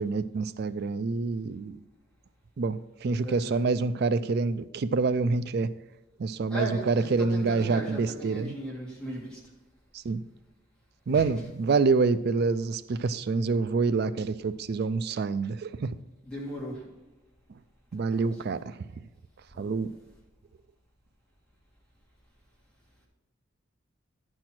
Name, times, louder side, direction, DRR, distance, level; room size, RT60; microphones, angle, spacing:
voice 1, 0.0-1.8 2.6-5.7 6.2-8.5 9.9-10.3 11.1-16.0 17.9-18.8 19.6-19.9, right 4 dB, 55° right, 14 dB, 0.4 m, -27 dB
voice 2, 3.2-3.6 6.5-9.4 11.1-11.2 16.2-16.8 18.2-18.3 19.5-19.8, right 1 dB, 5° left, -6 dB, 2.7 m, -37 dB
11.5 x 4.4 x 5.9 m, 1.1 s
head